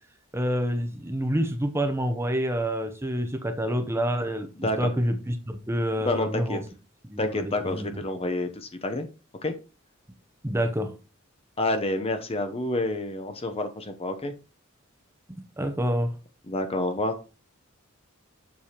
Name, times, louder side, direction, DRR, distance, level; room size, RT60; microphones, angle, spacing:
voice 1, 0.3-6.6 7.0-8.0 10.4-10.9 15.6-16.1, equal, 15° right, 7 dB, 0.7 m, -28 dB
voice 2, 6.0-6.6 7.2-9.1 9.4-9.5 11.6-14.3 16.5-17.2, left 2 dB, 30° left, 7 dB, 0.8 m, -28 dB
7.1 x 6.8 x 2.9 m, 0.32 s
head